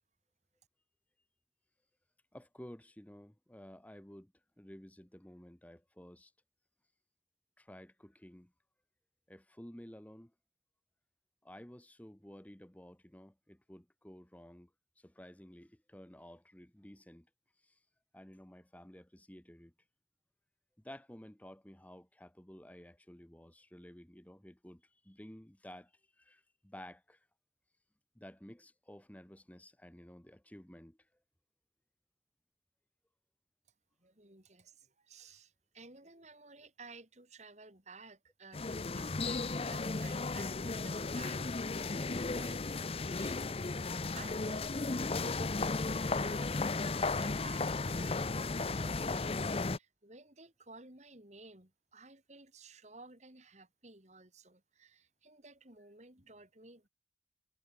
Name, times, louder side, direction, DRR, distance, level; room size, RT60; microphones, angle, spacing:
voice 1, 2.3-6.3 7.6-8.5 9.3-10.3 11.4-14.7 15.0-17.3 17.6-17.8 18.1-19.7 20.8-27.3 28.1-31.0, equal, 10° left, 1.0 m, -53 dB
voice 2, 34.0-43.5 44.1-46.6 46.9-48.3 48.8-49.2 49.6-56.9, right 3 dB, 35° right, 3.9 m, -55 dB
sound 1, 38.5-49.8, left 3 dB, 30° left, 0.6 m, -35 dB
head